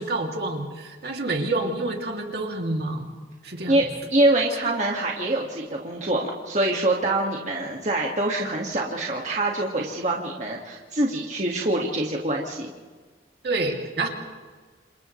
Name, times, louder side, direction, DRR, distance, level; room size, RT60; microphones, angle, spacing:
voice 1, 0.0-3.1 3.4-3.8 13.4-14.1, right 2 dB, 60° right, 1 dB, 2.9 m, -28 dB
voice 2, 4.1-12.7, right 1 dB, 40° right, -1 dB, 2.1 m, -25 dB
29.5 x 27.5 x 3.3 m, 1.4 s
head